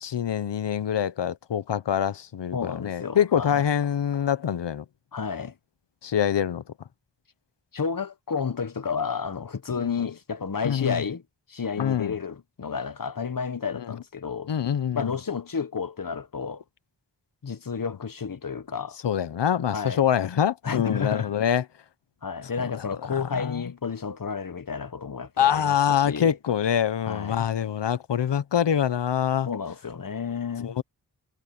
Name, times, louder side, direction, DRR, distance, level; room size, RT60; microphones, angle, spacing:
voice 1, 0.0-4.8 6.0-6.6 9.8-9.9 10.6-11.0 11.8-12.1 14.5-15.1 19.0-21.6 23.4-23.6 25.4-29.5 30.6-30.8, left 9 dB, 85° left, 1.0 m, -25 dB
voice 2, 2.5-3.7 5.1-5.5 7.7-11.2 11.5-14.5 14.9-16.6 17.4-19.0 19.7-20.1 20.6-21.3 22.2-26.3 27.1-27.5 29.4-30.8, left 6 dB, 55° left, 1.4 m, -31 dB
cardioid pair, 45°, 41 cm